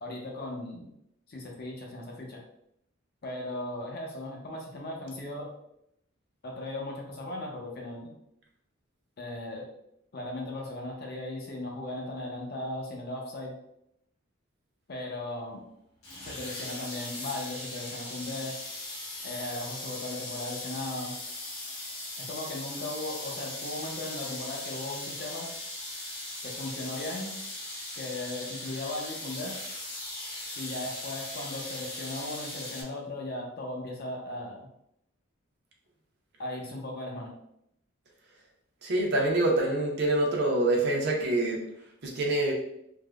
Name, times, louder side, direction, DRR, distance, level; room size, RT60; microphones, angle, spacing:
voice 1, 0.0-0.9 1.3-2.4 3.2-5.5 6.4-8.1 9.2-9.7 10.1-13.5 14.9-15.7 16.2-18.6 19.2-21.1 22.2-25.5 26.4-27.4 27.9-29.6 30.6-34.7 36.4-37.3, left 2 dB, 50° left, -1 dB, 0.6 m, -37 dB
sound 1, 16.0-32.8, left 2 dB, 80° left, 1.0 m, -39 dB
voice 2, 38.8-41.6 42.0-42.5, right 2 dB, 55° right, -1 dB, 0.6 m, -26 dB
3.3 x 2.0 x 2.3 m, 0.77 s
head